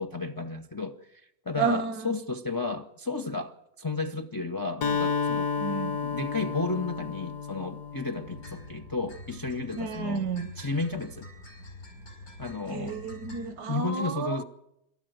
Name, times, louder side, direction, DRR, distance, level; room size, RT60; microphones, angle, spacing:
voice 1, 0.0-5.5 6.0-10.2 10.6-11.3 12.4-13.0 13.7-14.4, left 3 dB, 20° left, 0.5 m, -33 dB
voice 2, 1.6-2.1 5.6-6.0 9.8-10.5 12.7-14.4, right 5 dB, 80° right, 1.5 m, -31 dB
Acoustic guitar, 4.8-8.7, left 5 dB, 90° left, 2.0 m, -31 dB
sound 1, 8.2-13.5, left 1 dB, 65° left, 5.9 m, -46 dB
26.0 x 13.5 x 9.1 m
omnidirectional pair, 1.7 m